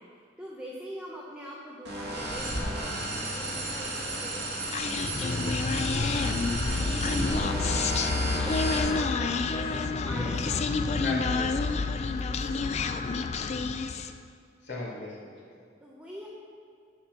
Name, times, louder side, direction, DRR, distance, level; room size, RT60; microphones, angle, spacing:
voice 1, 0.0-11.0 12.3-12.8 15.8-16.3, equal, 5° right, -4 dB, 0.8 m, -43 dB
sound 1, 1.8-9.0, right 1 dB, 60° right, 2.0 m, -32 dB
Human voice, 4.7-14.2, left 4 dB, 35° left, 0.3 m, -29 dB
voice 2, 10.0-10.4 11.0-11.7 14.6-15.3, left 2 dB, 65° left, -7 dB, 2.0 m, -36 dB
11.0 x 4.4 x 6.1 m, 2.4 s
head